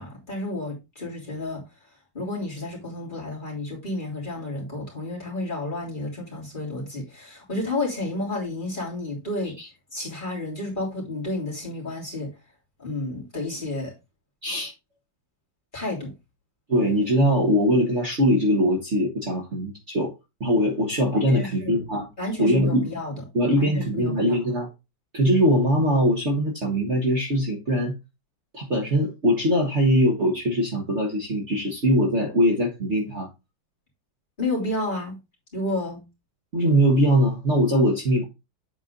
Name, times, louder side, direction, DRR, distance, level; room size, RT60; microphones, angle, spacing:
voice 1, 0.0-1.6 2.1-9.5 9.9-12.3 12.8-13.9 15.7-16.1 21.1-21.8 22.2-23.1 23.6-24.4 34.4-35.1 35.5-36.0, left 2 dB, 25° left, 3.4 m, -31 dB
voice 2, 16.7-20.1 20.4-22.1 22.4-22.9 23.3-24.7 25.1-27.9 28.5-33.3 36.5-38.2, equal, 40° right, 1.6 m, -21 dB
8.1 x 4.6 x 3.8 m
omnidirectional pair, 2.1 m